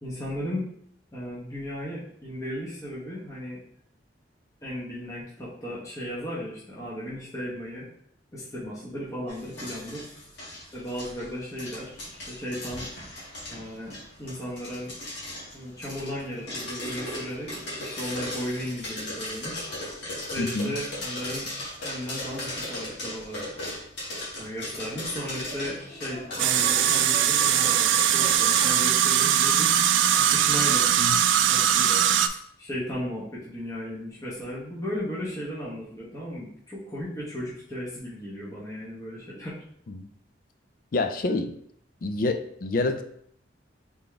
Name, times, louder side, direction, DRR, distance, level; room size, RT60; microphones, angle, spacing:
voice 1, 0.0-0.7 1.1-3.6 4.6-7.9 8.3-10.0 10.7-12.9 13.5-13.9 14.2-14.9 15.5-19.7 20.3-21.5 21.8-23.4 24.4-29.8 30.1-30.9 31.5-39.6, equal, 15° left, -7 dB, 1.1 m, -35 dB
sound 1, 9.3-28.7, left 1 dB, 70° left, 1.9 m, -37 dB
voice 2, 20.4-20.7 31.0-31.2 40.0-40.1 40.9-41.5 42.0-43.0, left 2 dB, 50° left, 8 dB, 0.4 m, -27 dB
sound 2, 26.4-32.3, right 10 dB, 80° right, 0.3 m, -21 dB
3.9 x 3.6 x 3.3 m, 0.67 s
head